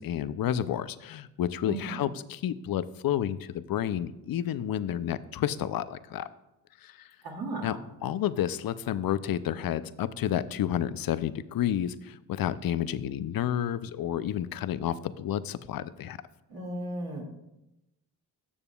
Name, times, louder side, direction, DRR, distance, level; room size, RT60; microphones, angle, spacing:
voice 1, 0.0-6.3 6.8-6.9 7.6-16.2, left 10 dB, 50° left, 15 dB, 0.5 m, -30 dB
voice 2, 1.6-2.1 7.2-7.7 16.5-17.2, right 2 dB, 50° right, -2 dB, 2.4 m, -35 dB
12.5 x 6.7 x 2.4 m, 0.91 s
supercardioid pair, 55°, 46 cm